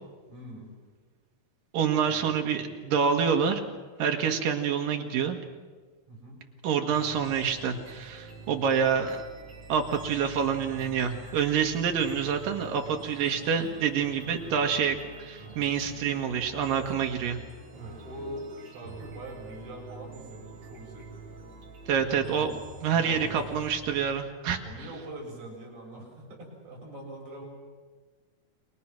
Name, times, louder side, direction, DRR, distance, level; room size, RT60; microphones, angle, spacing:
voice 1, 0.3-0.7 2.0-2.4 6.1-6.4 17.7-21.5 21.9-22.1 22.3-22.6 22.9-23.4 24.6-27.4, right 1 dB, 60° right, -1 dB, 8.5 m, -43 dB
voice 2, 1.7-3.6 4.0-5.4 6.6-9.2 9.7-17.4 21.9-22.5 22.8-24.6, right 7 dB, 80° right, 3 dB, 3.4 m, -27 dB
sound 1, 6.9-24.2, right 3 dB, 40° right, 3.5 m, -46 dB
29.5 x 23.0 x 6.1 m, 1.4 s
omnidirectional pair, 3.9 m